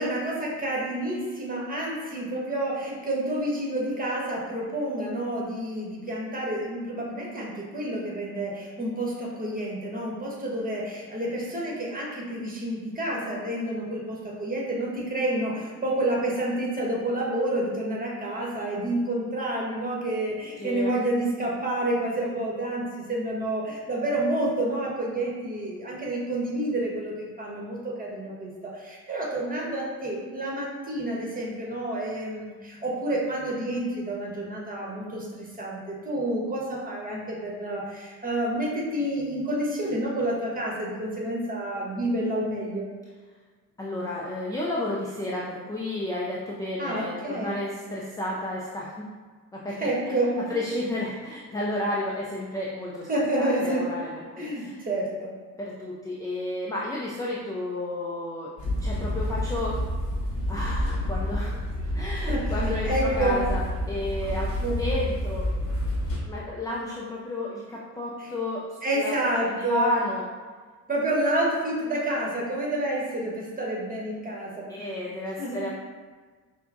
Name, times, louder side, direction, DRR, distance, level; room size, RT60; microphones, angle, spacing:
voice 1, 0.0-42.9 46.8-47.6 49.7-50.6 53.1-53.8 54.4-55.3 62.1-62.4 62.8-63.4 64.6-64.8 68.2-68.3 68.8-70.0 70.9-74.9 75.4-75.6, right 1 dB, 20° right, -3 dB, 1.2 m, -29 dB
voice 2, 20.6-21.0 43.8-49.1 49.5-49.9 50.5-53.1 53.4-54.8 55.6-58.5 58.8-59.8 60.5-61.6 61.9-65.5 66.3-69.1 69.4-70.2 74.7-75.7, left 1 dB, 10° left, -4 dB, 0.4 m, -32 dB
sound 1, 58.6-66.2, left 1 dB, 40° left, 1.3 m, -28 dB
5.6 x 2.3 x 2.5 m, 1.4 s
figure-of-eight pair, 55°, 46 cm